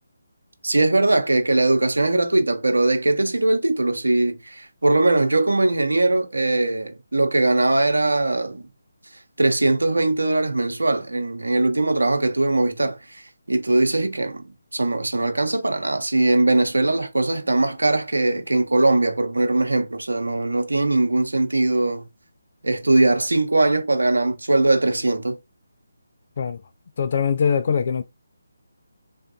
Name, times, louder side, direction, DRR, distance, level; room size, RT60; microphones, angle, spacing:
voice 1, 0.6-8.7 9.4-13.0 13.5-14.4 14.7-22.0 22.6-25.4, right 2 dB, 80° right, 0.8 m, -20 dB
voice 2, 27.0-28.0, left 6 dB, 45° left, 0.4 m, -22 dB
3.4 x 2.4 x 2.7 m
figure-of-eight pair, 150°, 0 cm